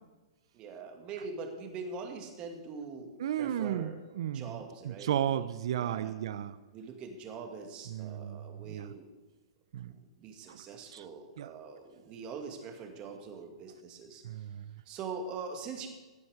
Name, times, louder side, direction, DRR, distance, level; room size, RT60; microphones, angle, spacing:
voice 1, 0.5-4.0 4.3-5.5 5.8-6.1 6.7-9.1 9.9-14.2 14.9-15.9, right 4 dB, 35° right, 3 dB, 2.2 m, -43 dB
voice 2, 3.2-4.6 4.8-6.5 7.9-8.9 9.7-9.9 10.5-10.6 10.9-11.0 11.4-11.5 14.2-14.7, right 10 dB, 65° right, 15 dB, 0.7 m, -34 dB
16.5 x 7.0 x 5.0 m, 1.2 s
hypercardioid pair, 120°, 3 cm